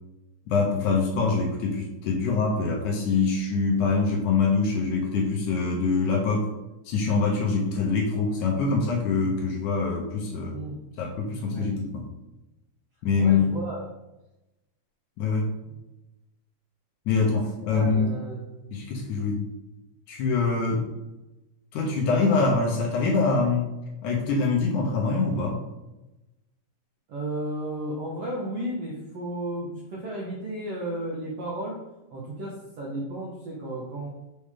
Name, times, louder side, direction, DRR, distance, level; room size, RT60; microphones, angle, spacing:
voice 1, 0.5-6.5 6.9-10.6 11.0-12.1 13.0-13.5 15.2-15.5 17.1-18.1 18.7-19.5 20.1-20.8 21.7-23.7 24.0-25.6, left 4 dB, 75° left, -1 dB, 1.9 m, -24 dB
voice 2, 10.5-10.8 11.4-11.7 13.2-13.8 15.6-15.7 17.1-17.3 17.7-18.8 27.1-31.8 32.1-34.1, right 1 dB, 75° right, -4 dB, 1.4 m, -34 dB
6.6 x 4.5 x 3.6 m, 0.97 s
omnidirectional pair, 4.4 m